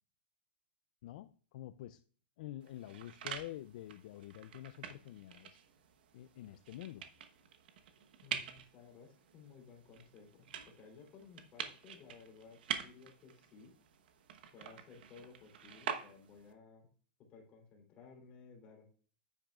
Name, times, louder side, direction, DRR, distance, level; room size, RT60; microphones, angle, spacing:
voice 1, 1.0-2.0 2.4-5.6 6.1-7.1, left 13 dB, 50° left, 0.4 m, -48 dB
sound 1, 2.6-16.5, right 8 dB, 70° right, 1.1 m, -47 dB
voice 2, 8.2-13.7 14.5-16.9 17.3-18.9, left 5 dB, 25° left, 3.2 m, -57 dB
10.0 x 9.0 x 2.4 m
supercardioid pair, 170°, 5 cm